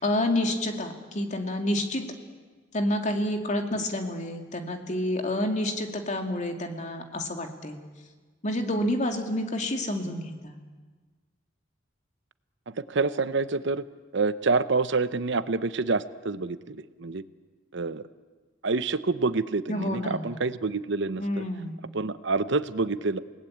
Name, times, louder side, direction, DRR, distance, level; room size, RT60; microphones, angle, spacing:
voice 1, 0.0-2.0 2.7-7.8 8.4-10.6 19.7-20.3 21.2-21.8, left 1 dB, 40° left, 4 dB, 2.4 m, -29 dB
voice 2, 12.7-13.8 14.1-17.2 17.7-18.0 18.6-21.4 21.9-23.2, right 3 dB, 65° right, 13 dB, 0.8 m, -27 dB
29.0 x 18.5 x 8.7 m, 1.4 s
head